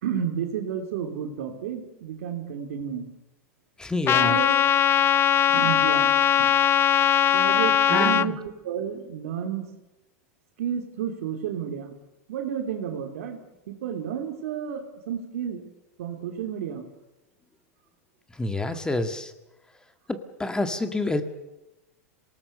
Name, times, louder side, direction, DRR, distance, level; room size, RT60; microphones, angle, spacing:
voice 1, 0.0-3.1 4.1-4.6 5.5-6.5 7.3-9.7 10.6-11.9 12.3-13.4 13.7-15.6 16.0-16.9, right 8 dB, 70° right, 3 dB, 3.3 m, -31 dB
voice 2, 3.8-4.4 7.9-8.3 18.4-19.3 20.1-21.2, left 2 dB, 10° left, 8 dB, 1.9 m, -28 dB
Trumpet, 4.1-8.3, left 10 dB, 30° left, 0.7 m, -20 dB
26.5 x 19.0 x 6.9 m, 0.94 s
hypercardioid pair, 110°, 8 cm